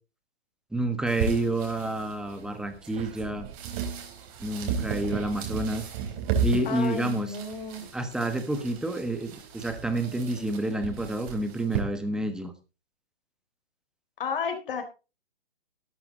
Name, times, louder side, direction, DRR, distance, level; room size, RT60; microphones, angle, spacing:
voice 1, 0.7-3.5 4.4-5.9 6.4-7.3 7.9-12.5, right 1 dB, ahead, 9 dB, 1.4 m, -29 dB
sound 1, 1.1-11.8, right 6 dB, 35° right, 4.1 m, -34 dB
voice 2, 6.6-7.9 14.2-14.8, left 4 dB, 55° left, 7 dB, 4.1 m, -32 dB
12.5 x 12.0 x 3.9 m, 0.31 s
hypercardioid pair, 135°, 32 cm